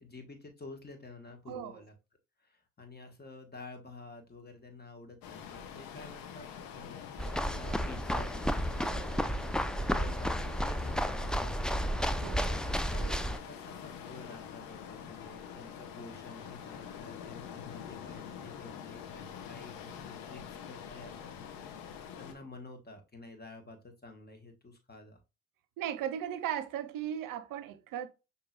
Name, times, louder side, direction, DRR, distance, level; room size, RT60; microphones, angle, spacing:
voice 1, 0.0-1.9 2.4-6.5 6.7-7.2 7.4-9.3 9.6-21.3 21.6-25.2, left 2 dB, 30° left, 1.5 m, -50 dB
voice 2, 1.5-1.8 8.8-9.1 12.2-12.5 25.8-28.1, right 10 dB, 70° right, 0.6 m, -37 dB
sound 1, 5.2-22.3, left 8 dB, 75° left, 0.9 m, -46 dB
sound 2, 7.2-13.4, equal, ahead, 0.4 m, -32 dB
6.0 x 2.8 x 2.4 m
hypercardioid pair, 50°, 34 cm